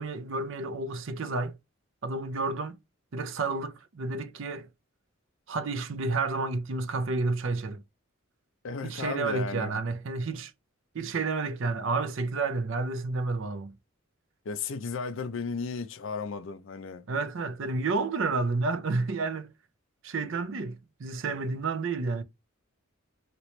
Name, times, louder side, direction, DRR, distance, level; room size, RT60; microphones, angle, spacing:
voice 1, 0.0-1.6 2.0-2.8 3.1-4.7 5.5-7.8 8.8-10.5 10.9-13.7 17.1-19.5 20.0-22.2, right 3 dB, 60° right, 0.5 m, -30 dB
voice 2, 8.6-9.8 14.5-17.0, left 4 dB, 60° left, 0.4 m, -34 dB
2.9 x 2.9 x 3.1 m
head